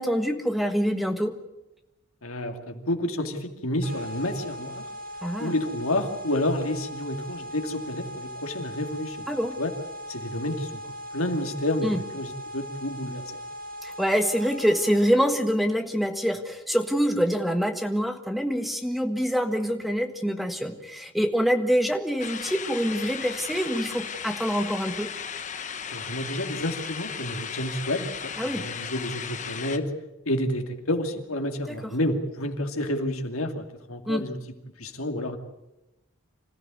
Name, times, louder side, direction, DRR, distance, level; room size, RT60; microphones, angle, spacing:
voice 1, 0.0-1.4 5.2-5.5 9.3-9.6 11.8-12.0 13.8-25.1 28.4-28.6 31.7-31.8 34.1-34.3, equal, ahead, 6 dB, 1.5 m, -25 dB
voice 2, 2.2-4.8 5.4-9.3 9.6-9.7 10.1-10.8 11.1-13.2 25.9-29.9 30.3-34.4 34.8-35.4, left 1 dB, 80° left, 5 dB, 2.6 m, -29 dB
sound 1, 3.8-15.2, equal, 40° right, 6.0 m, -39 dB
sound 2, 22.2-29.8, left 7 dB, 35° left, 1.1 m, -36 dB
26.0 x 15.0 x 9.4 m, 0.94 s
head